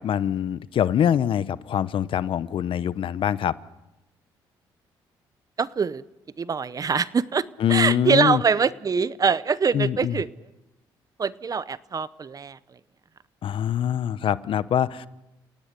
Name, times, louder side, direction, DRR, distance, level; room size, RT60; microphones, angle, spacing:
voice 1, 0.0-3.5 7.6-8.4 9.7-10.2 13.4-15.1, left 9 dB, 60° left, 17 dB, 0.8 m, -24 dB
voice 2, 5.6-6.0 6.4-7.4 7.7-10.3 11.2-12.8, right 5 dB, 40° right, 17 dB, 0.8 m, -24 dB
28.5 x 18.0 x 6.8 m, 0.99 s
supercardioid pair, 70°, 10 cm